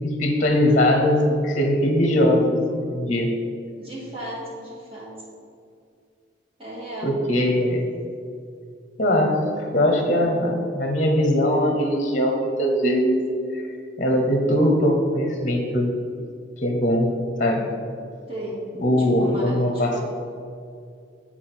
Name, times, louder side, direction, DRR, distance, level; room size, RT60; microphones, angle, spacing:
voice 1, 0.0-2.5 2.8-3.3 7.0-7.9 9.0-13.2 13.5-13.6 14.0-15.9 16.6-17.1 17.4-17.7 18.8-20.0, equal, 40° left, 2 dB, 0.9 m, -21 dB
voice 2, 3.8-5.1 6.6-7.2 18.3-18.6 19.0-20.0, right 1 dB, 30° right, -6 dB, 2.0 m, -35 dB
9.8 x 4.4 x 4.4 m, 2.3 s
head